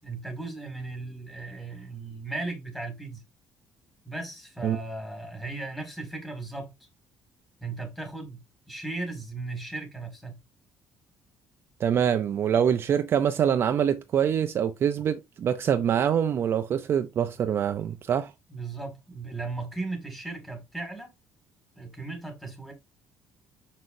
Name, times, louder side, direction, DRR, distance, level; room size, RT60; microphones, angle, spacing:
voice 1, 0.0-3.2 4.1-6.7 7.6-10.4 18.5-21.1 21.8-22.7, right 3 dB, 5° left, 1.9 m, -36 dB
voice 2, 11.8-18.3, right 8 dB, 40° right, 0.5 m, -25 dB
6.4 x 5.8 x 2.6 m
cardioid pair, 170°, 6 cm